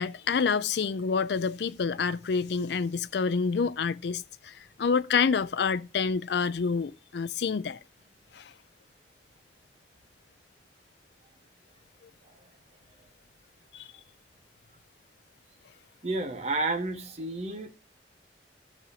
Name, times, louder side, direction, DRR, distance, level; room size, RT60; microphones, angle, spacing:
voice 1, 0.0-7.8 8.3-8.5 13.7-13.9, left 5 dB, 70° left, 0.4 m, -28 dB
voice 2, 16.0-17.7, right 2 dB, 40° right, 1.5 m, -31 dB
15.0 x 6.2 x 2.8 m
head